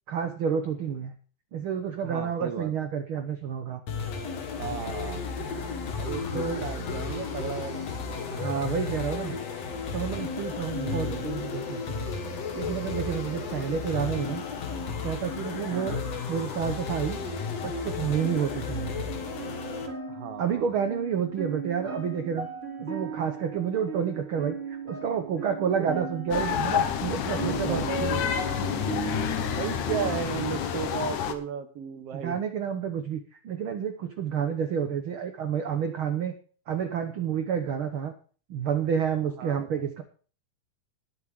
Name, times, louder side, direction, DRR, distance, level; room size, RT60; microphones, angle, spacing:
voice 1, 0.1-1.1 1.5-3.8 6.3-6.7 8.3-9.4 9.9-12.1 12.5-14.4 15.0-17.2 17.6-19.0 20.4-22.5 22.8-27.8 32.1-36.3 36.7-38.1 38.5-40.0, right 7 dB, 75° right, 7 dB, 1.2 m, -30 dB
voice 2, 2.0-2.7 4.6-5.2 6.0-7.9 10.8-11.3 15.7-16.0 20.1-20.7 25.8-26.0 27.4-28.3 29.1-32.4 39.2-39.6, right 7 dB, 60° right, 9 dB, 2.0 m, -35 dB
sound 1, 3.9-19.9, left 5 dB, 55° left, 2.6 m, -33 dB
sound 2, 19.3-30.2, right 4 dB, 20° right, 3.3 m, -37 dB
sound 3, 26.3-31.3, left 9 dB, 70° left, 2.5 m, -29 dB
19.5 x 8.2 x 3.6 m, 0.41 s
omnidirectional pair, 3.8 m